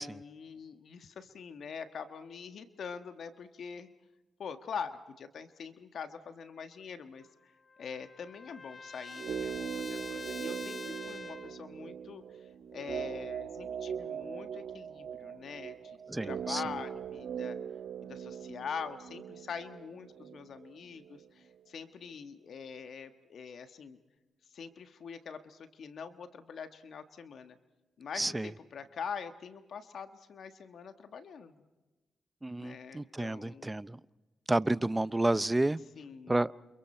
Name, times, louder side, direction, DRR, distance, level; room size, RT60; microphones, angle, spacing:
voice 1, 0.0-3.9 4.4-7.5 7.8-16.0 16.2-17.6 18.0-24.0 24.5-27.6 28.0-31.6 32.6-33.8 36.0-36.3, left 6 dB, 70° left, 9 dB, 1.4 m, -44 dB
Trumpet, 7.2-11.6, left 4 dB, 40° left, 1.1 m, -46 dB
sound 1, 9.1-21.3 21.5-21.6, right 8 dB, 75° right, 1.3 m, -40 dB
voice 2, 16.1-16.6 28.1-28.5 32.4-34.0 34.5-35.8 36.3-36.5, right 2 dB, 20° right, 18 dB, 0.7 m, -30 dB
29.0 x 28.0 x 4.4 m, 1.1 s
cardioid pair, 60°, 0 cm